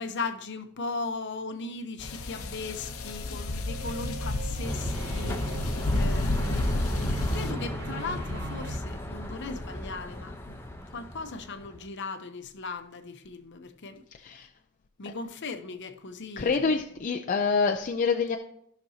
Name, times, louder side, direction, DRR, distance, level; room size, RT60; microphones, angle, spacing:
voice 1, 0.0-10.6 10.9-14.4 15.0-16.8, left 3 dB, 55° left, 0.8 m, -38 dB
sound 1, 2.0-7.5, left 2 dB, 85° left, 0.9 m, -31 dB
sound 2, 3.7-8.8, right 2 dB, 50° right, 0.4 m, -40 dB
sound 3, 4.6-11.8, left 1 dB, 10° left, 0.8 m, -34 dB
voice 2, 16.4-18.4, left 5 dB, 40° left, 0.4 m, -26 dB
14.5 x 6.0 x 2.8 m
head